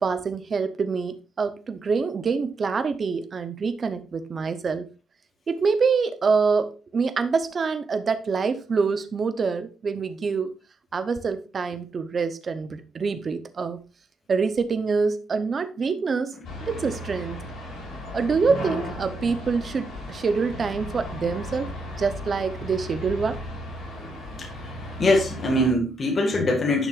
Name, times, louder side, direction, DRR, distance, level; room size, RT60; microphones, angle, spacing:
voice 1, 0.0-4.9 5.5-10.5 10.9-13.8 14.3-16.3 16.7-17.4 18.1-21.7 22.0-23.4, right 5 dB, 35° right, 0.8 m, -25 dB
sound 1, 16.4-25.7, left 1 dB, 70° left, 3.8 m, -36 dB
voice 2, 25.0-26.9, left 1 dB, 35° left, 1.8 m, -22 dB
10.5 x 6.1 x 2.5 m
cardioid pair, 150°, 0 cm